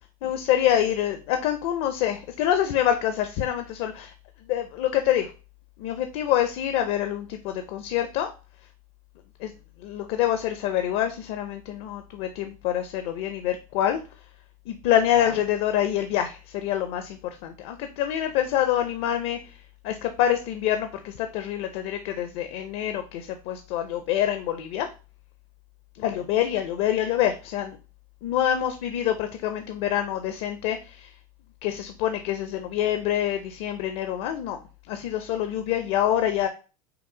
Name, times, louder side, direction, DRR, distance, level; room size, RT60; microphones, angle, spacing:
voice 1, 0.2-4.1 4.5-5.3 5.8-8.3 9.4-9.5 9.8-14.0 14.7-19.4 19.8-24.9 26.0-27.8 28.2-31.1 31.6-34.6 34.9-36.5, left 11 dB, 65° left, 7 dB, 0.6 m, -26 dB
5.8 x 2.0 x 3.8 m, 0.33 s
supercardioid pair, 105°, 18 cm